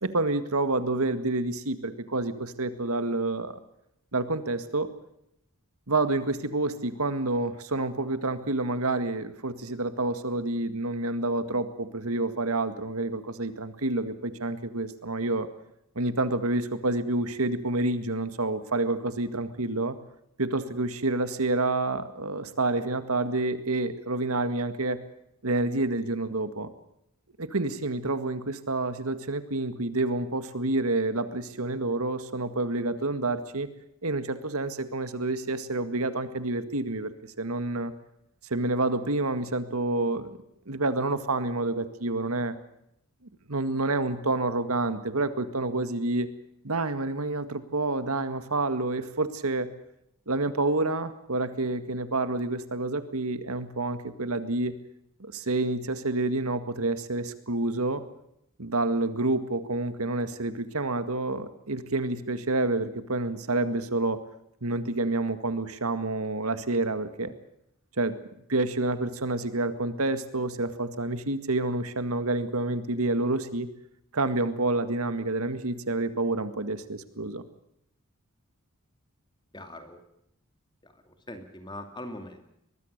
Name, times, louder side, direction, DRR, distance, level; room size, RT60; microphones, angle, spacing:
voice 1, 0.0-3.5 4.1-4.9 5.9-15.5 16.0-20.0 20.4-25.0 25.4-26.7 27.4-33.7 34.0-37.9 38.5-40.4 40.7-42.6 43.5-46.3 46.6-49.7 50.3-54.7 55.2-58.0 58.6-64.2 64.6-67.3 68.0-68.1 68.5-73.7 74.1-77.4, right 2 dB, 80° right, 11 dB, 1.9 m, -28 dB
voice 2, 79.5-80.0 80.8-82.5, left 1 dB, 20° left, 7 dB, 2.5 m, -42 dB
23.5 x 21.0 x 6.7 m, 0.77 s
head